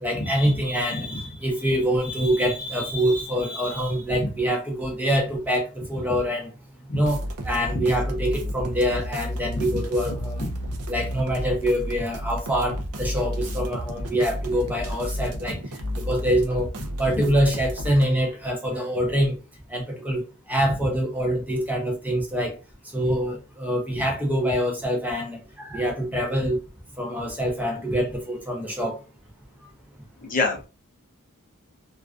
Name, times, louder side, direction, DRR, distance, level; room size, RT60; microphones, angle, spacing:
voice 1, 0.0-6.5 6.9-10.5 10.9-15.6 16.0-16.7 17.0-19.3 19.7-20.2 20.5-22.5 22.9-26.6 27.0-29.0, equal, 10° right, 0.5 m, -25 dB
sound 1, 7.0-18.0, equal, 80° right, 0.5 m, -31 dB
voice 2, 30.3-30.7, left 3 dB, 40° left, 0.5 m, -26 dB
2.4 x 2.3 x 2.3 m
head